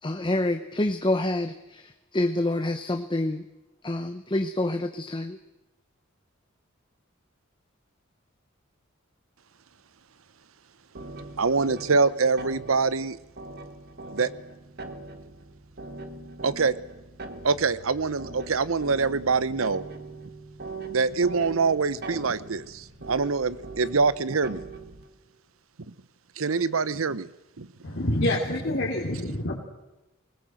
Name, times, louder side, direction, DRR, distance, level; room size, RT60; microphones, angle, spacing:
voice 1, 0.0-3.4 3.8-5.4, left 1 dB, 25° left, 8 dB, 0.8 m, -27 dB
sound 1, 10.9-25.1, right 3 dB, 50° right, 1.5 m, -41 dB
voice 2, 11.4-13.2 14.1-14.3 16.4-16.7 17.4-19.8 20.9-24.6 26.4-27.3 27.6-27.7, right 4 dB, 75° right, 17 dB, 0.8 m, -24 dB
voice 3, 27.8-29.6, left 1 dB, 60° left, -5 dB, 3.1 m, -27 dB
21.0 x 20.0 x 7.8 m, 0.99 s
head